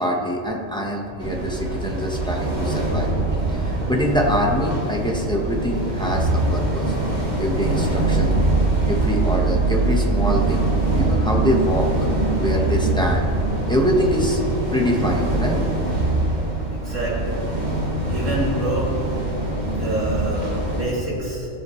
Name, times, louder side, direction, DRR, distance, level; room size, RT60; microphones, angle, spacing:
voice 1, 0.0-3.1 3.5-8.4 8.9-10.7 10.9-11.9 12.4-13.3 13.7-14.4 14.7-15.6 19.3-19.8, equal, 5° left, -1 dB, 1.0 m, -24 dB
sound 1, 1.2-20.8, right 2 dB, 35° right, 1.5 m, -23 dB
voice 2, 16.7-17.4 18.1-18.9 19.7-21.5, right 2 dB, 75° right, -7 dB, 3.0 m, -27 dB
15.5 x 7.2 x 3.2 m, 3.0 s
omnidirectional pair, 1.3 m